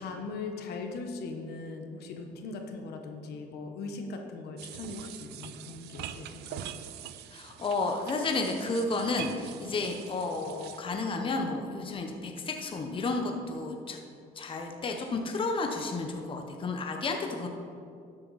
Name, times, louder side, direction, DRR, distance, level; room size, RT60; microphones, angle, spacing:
voice 1, 0.0-6.7, left 3 dB, 70° left, 4 dB, 1.2 m, -39 dB
sound 1, 4.6-10.8, right 11 dB, 80° right, 0.5 m, -44 dB
voice 2, 7.3-14.0 14.4-17.5, left 3 dB, 30° left, 3 dB, 0.9 m, -32 dB
12.0 x 7.9 x 4.1 m, 2.5 s
cardioid pair, 110°, 17 cm